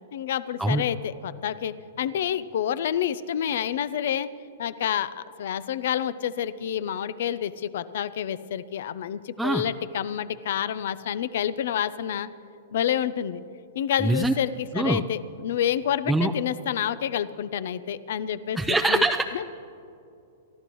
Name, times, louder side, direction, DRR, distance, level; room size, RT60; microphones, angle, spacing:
voice 1, 0.1-4.3 4.6-12.3 12.7-13.4 13.7-18.6 18.9-19.0 19.3-19.4, left 10 dB, 65° left, 16 dB, 0.5 m, -28 dB
voice 2, 14.0-14.3 14.7-15.0 16.1-16.3 18.6-19.4, right 2 dB, 5° right, 2 dB, 0.4 m, -23 dB
29.5 x 13.5 x 3.1 m, 2.7 s
hypercardioid pair, 145°, 0 cm